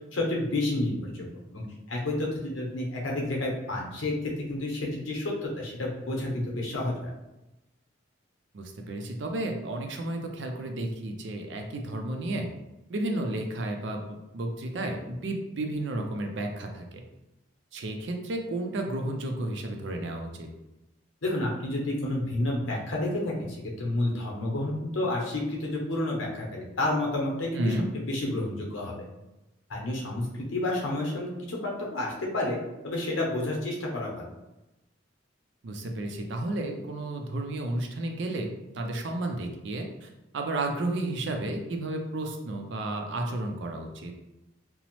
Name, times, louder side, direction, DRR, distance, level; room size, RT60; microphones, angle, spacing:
voice 1, 0.1-1.1 1.5-7.1 21.2-29.0 29.7-34.3, left 1 dB, 85° left, -2 dB, 0.8 m, -30 dB
voice 2, 8.5-12.5 12.9-17.0 17.7-20.5 27.6-27.9 35.6-40.1 40.3-44.1, right 1 dB, 65° right, 3 dB, 0.4 m, -32 dB
2.9 x 2.0 x 2.9 m, 0.98 s
head